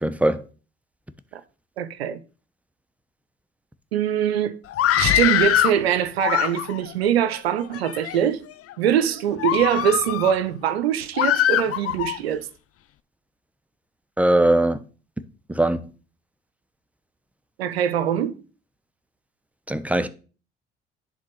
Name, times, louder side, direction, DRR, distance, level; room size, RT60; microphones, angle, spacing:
voice 1, 0.0-0.4 14.2-14.8 15.5-15.8 19.7-20.1, right 1 dB, 5° right, 1.0 m, -20 dB
voice 2, 1.8-2.2 3.9-4.6 4.9-8.4 8.8-12.5 17.6-18.3, right 9 dB, 90° right, 0.7 m, -23 dB
Screaming, 4.7-5.8 6.2-6.9 7.6-8.2 8.7-8.9 9.4-10.4 11.2-12.2, left 12 dB, 50° left, 0.6 m, -22 dB
10.0 x 3.9 x 6.0 m
hypercardioid pair, 55°, 30 cm